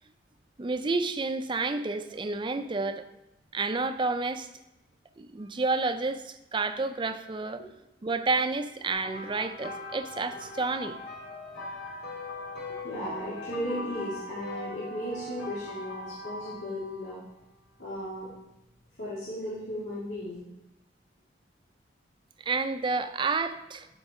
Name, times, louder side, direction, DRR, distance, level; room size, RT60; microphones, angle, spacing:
voice 1, 0.6-3.0 3.5-4.5 5.2-7.6 8.0-11.0 22.5-23.9, right 3 dB, 25° right, 9 dB, 0.4 m, -30 dB
sound 1, 8.9-17.2 18.0-18.3 20.1-20.2, left 1 dB, 55° left, 2.4 m, -40 dB
voice 2, 12.7-17.2 17.8-18.3 19.0-20.4, equal, 85° left, -9 dB, 2.3 m, -36 dB
11.5 x 4.6 x 4.2 m, 0.93 s
head